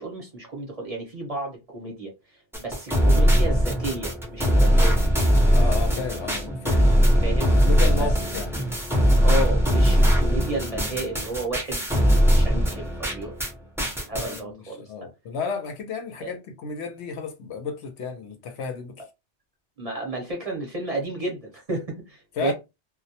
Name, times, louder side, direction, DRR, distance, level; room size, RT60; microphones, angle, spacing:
voice 1, 0.0-5.0 7.2-7.5 8.0-8.1 9.2-13.4 13.9-15.1 16.2-16.3 19.8-22.5, right 2 dB, 40° right, 0.6 m, -32 dB
sound 1, 2.5-13.5 13.8-14.4, equal, 5° right, 0.4 m, -20 dB
voice 2, 5.5-6.8 7.6-8.5 14.1-19.0 22.4-22.5, left 5 dB, 70° left, 0.9 m, -33 dB
2.2 x 2.1 x 2.6 m
omnidirectional pair, 1.2 m